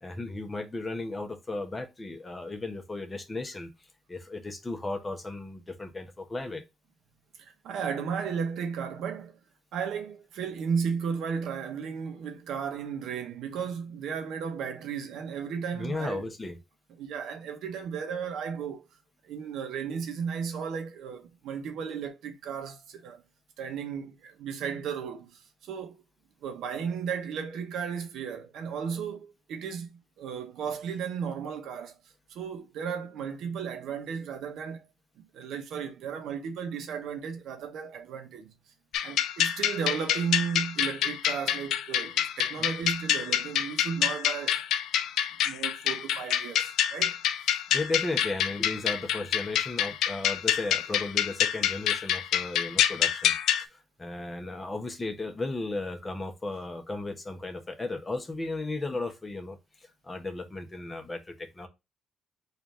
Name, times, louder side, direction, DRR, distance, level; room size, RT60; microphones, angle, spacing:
voice 1, 0.0-3.7 4.1-6.6 15.7-16.6 47.7-61.7, left 2 dB, 25° left, 0.9 m, -35 dB
voice 2, 7.4-9.4 9.7-16.3 17.0-18.9 19.2-23.2 23.6-25.9 26.4-32.0 32.3-34.8 35.2-38.5 39.0-44.6 45.4-47.2, right 6 dB, 80° right, 0.8 m, -34 dB
sound 1, 38.9-53.6, left 10 dB, 85° left, 0.3 m, -27 dB
3.3 x 2.5 x 4.0 m
cardioid pair, 90°, 0 cm